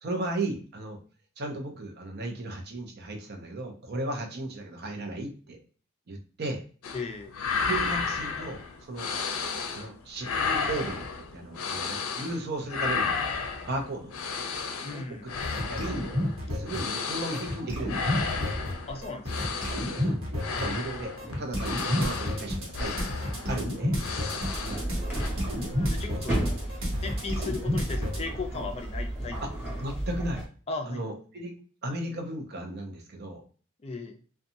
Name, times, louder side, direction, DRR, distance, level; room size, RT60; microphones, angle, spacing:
voice 1, 0.0-1.0 1.4-5.6 6.1-6.6 7.7-9.1 9.7-13.3 13.6-14.2 14.9-16.1 16.5-18.5 20.0-20.2 20.6-23.1 23.5-24.0 24.6-24.8 26.1-26.2 29.4-29.5 29.8-30.4 30.9-31.6 31.8-33.4, right 2 dB, 50° right, 4 dB, 0.6 m, -35 dB
sound 1, 6.8-7.1 7.3-9.9 10.2-12.4 12.7-24.9 25.2-25.3, left 5 dB, 85° left, 0.5 m, -33 dB
voice 2, 6.9-7.4 14.8-15.3 18.9-19.3 25.9-26.6 27.0-29.4 30.7-31.1 33.8-34.2, left 3 dB, 30° left, 3 dB, 0.4 m, -36 dB
sound 2, 15.4-17.1 17.3-28.2, left 1 dB, 75° right, 1.1 m, -31 dB
sound 3, 24.4-30.4, right 1 dB, 10° right, 1.2 m, -33 dB
2.7 x 2.3 x 2.6 m, 0.38 s
head